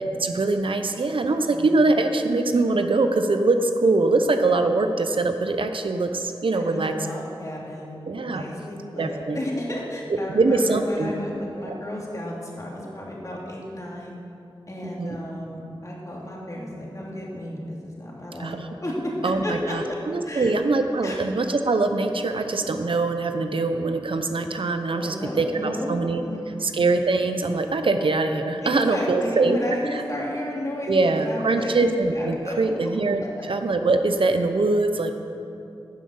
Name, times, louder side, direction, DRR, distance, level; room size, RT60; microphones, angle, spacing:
voice 1, 0.2-7.2 8.1-8.4 9.0-9.4 10.3-11.1 11.6-11.8 15.0-15.2 18.4-18.7 19.2-26.2 26.6-29.6 29.9-30.0 30.9-35.1, right 3 dB, 70° right, 7 dB, 0.8 m, -23 dB
voice 2, 6.5-14.1 14.7-20.0 20.2-20.6 21.0-21.2 24.9-25.9 26.2-26.7 28.6-31.7 32.1-32.7 33.4-33.5, left 1 dB, 35° left, -3 dB, 2.7 m, -33 dB
11.0 x 7.7 x 7.9 m, 2.7 s
wide cardioid pair, 70°, 9 cm